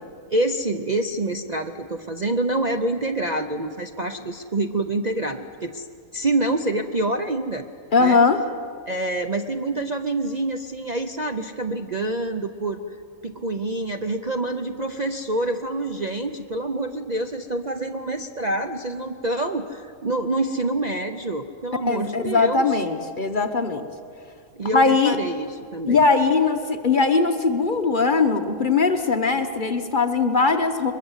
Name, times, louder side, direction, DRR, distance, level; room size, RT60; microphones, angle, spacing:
voice 1, 0.3-5.9 6.1-7.6 8.0-8.2 8.9-13.0 13.2-22.7 24.6-26.0, right 2 dB, 40° right, 6 dB, 0.7 m, -26 dB
voice 2, 7.9-8.4 21.9-23.9 24.7-25.2 25.9-30.9, left 4 dB, 35° left, 6 dB, 1.2 m, -20 dB
23.0 x 21.5 x 8.1 m, 2.3 s
omnidirectional pair, 1.5 m